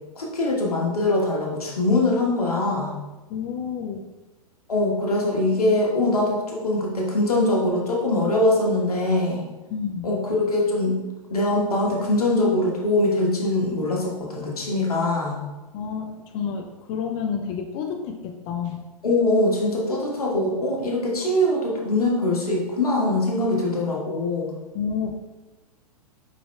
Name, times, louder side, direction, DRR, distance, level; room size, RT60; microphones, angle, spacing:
voice 1, 0.2-2.9 4.7-9.4 10.0-11.0 11.3-15.4 19.0-24.5, left 2 dB, 75° left, -2 dB, 1.3 m, -22 dB
voice 2, 3.3-4.1 9.7-10.2 15.7-18.8 24.7-25.1, left 6 dB, 25° left, 3 dB, 0.3 m, -30 dB
4.8 x 4.8 x 2.3 m, 1.1 s
figure-of-eight pair, 110°, 19 cm